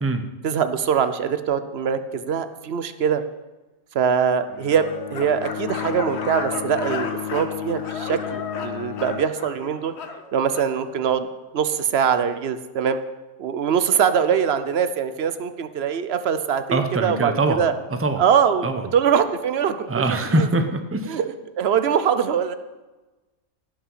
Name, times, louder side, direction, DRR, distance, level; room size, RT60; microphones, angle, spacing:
voice 1, 0.4-3.2 3.9-9.9 10.3-11.3 11.5-13.0 13.4-17.7 18.2-18.7 18.9-20.0 20.3-20.5 21.1-21.2 21.6-22.5, right 7 dB, 60° right, 11 dB, 0.8 m, -22 dB
Bowed string instrument, 4.5-9.4, left 11 dB, 85° left, 1.3 m, -33 dB
sound 1, 4.7-10.7, left 5 dB, 55° left, 1.1 m, -34 dB
voice 2, 16.7-17.6 17.9-18.2 18.6-18.9 19.9-21.2, right 2 dB, 15° right, 7 dB, 0.7 m, -23 dB
16.5 x 5.9 x 5.6 m, 1.2 s
omnidirectional pair, 1.4 m